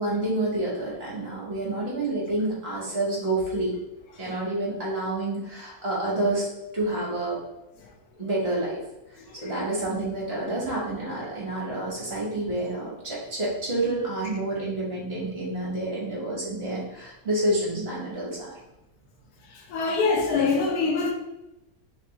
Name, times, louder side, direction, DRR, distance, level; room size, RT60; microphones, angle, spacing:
voice 1, 0.0-3.7 4.2-6.5 6.7-7.4 8.2-8.8 9.4-18.6, right 2 dB, 45° right, -5 dB, 1.3 m, -28 dB
voice 2, 19.7-21.1, left 4 dB, 80° left, 2 dB, 1.2 m, -24 dB
3.5 x 3.3 x 2.9 m, 0.94 s
omnidirectional pair, 1.7 m